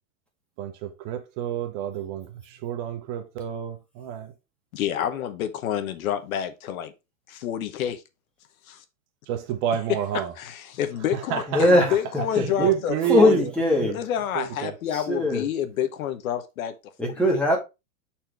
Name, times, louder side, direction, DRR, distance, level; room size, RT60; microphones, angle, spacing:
voice 1, 0.6-4.3 9.3-10.3 11.1-12.0 12.3-13.9 14.3-14.7, right 10 dB, 40° right, 0.9 m, -29 dB
voice 2, 4.7-6.9 7.3-8.0 8.7-8.8 10.4-13.3 13.9-16.7 17.0-17.1, left 10 dB, 70° left, 1.0 m, -28 dB
voice 3, 11.5-11.8 12.4-12.5 13.1-14.0 14.9-15.4 17.0-17.6, left 1 dB, 5° left, 2.0 m, -20 dB
7.3 x 4.4 x 3.3 m
supercardioid pair, 145°, 43 cm